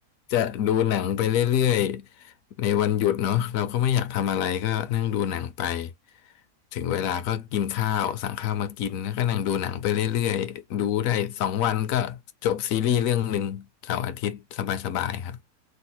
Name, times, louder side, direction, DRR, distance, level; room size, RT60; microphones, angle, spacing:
voice 1, 0.3-5.9 6.7-15.4, left 10 dB, 70° left, 0.9 m, -26 dB
3.1 x 2.0 x 4.1 m
omnidirectional pair, 1.6 m